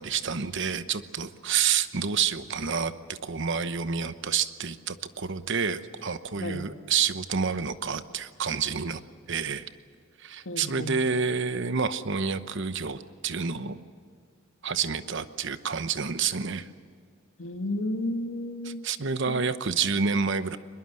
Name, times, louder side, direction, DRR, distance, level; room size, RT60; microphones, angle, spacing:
voice 1, 0.0-9.0 9.3-9.7 10.2-13.8 14.6-16.7 18.6-20.6, right 6 dB, 60° right, 12 dB, 1.0 m, -29 dB
voice 2, 10.5-10.9 17.4-18.8 19.3-19.4, left 1 dB, 70° left, 6 dB, 1.8 m, -32 dB
22.5 x 21.5 x 7.7 m, 2.2 s
head